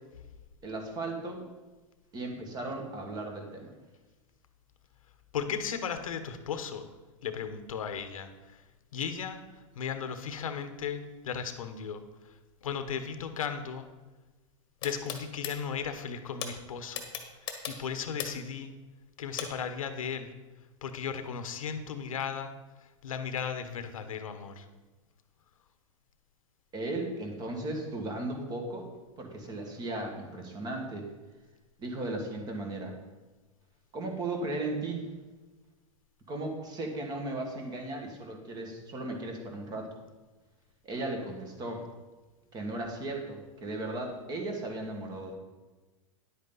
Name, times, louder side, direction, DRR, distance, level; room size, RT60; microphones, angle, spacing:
voice 1, 0.6-1.5 2.1-3.7 26.7-28.9 29.2-31.1 31.8-32.9 33.9-35.1 36.3-39.9 40.8-41.9 42.5-45.4, right 2 dB, 25° right, 2 dB, 1.9 m, -36 dB
voice 2, 5.3-6.9 7.2-8.6 8.9-9.4 9.8-12.0 12.6-13.9 14.8-17.0 17.5-18.7 19.2-20.3 20.8-22.5 23.0-24.7, left 7 dB, 85° left, 9 dB, 1.1 m, -36 dB
sound 1, 14.8-15.5 16.4-16.5 16.9-18.5 19.4-19.5, left 8 dB, 25° left, 1.4 m, -36 dB
10.5 x 8.2 x 4.0 m, 1.2 s
hypercardioid pair, 140°, 17 cm